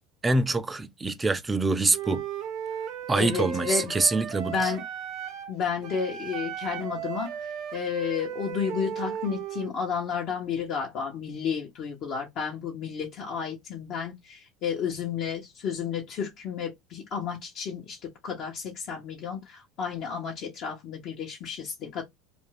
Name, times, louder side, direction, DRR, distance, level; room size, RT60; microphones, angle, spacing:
voice 1, 0.2-2.2 3.1-4.7, right 3 dB, 15° right, 0.4 m, -25 dB
Wind instrument woodwind instrument, 1.9-5.5 5.8-9.7, right 8 dB, 55° right, 0.7 m, -36 dB
voice 2, 3.2-3.9 4.5-4.8 5.5-7.3 7.7-22.0, left 6 dB, 55° left, 0.9 m, -32 dB
2.5 x 2.2 x 3.2 m
supercardioid pair, 105°, 0 cm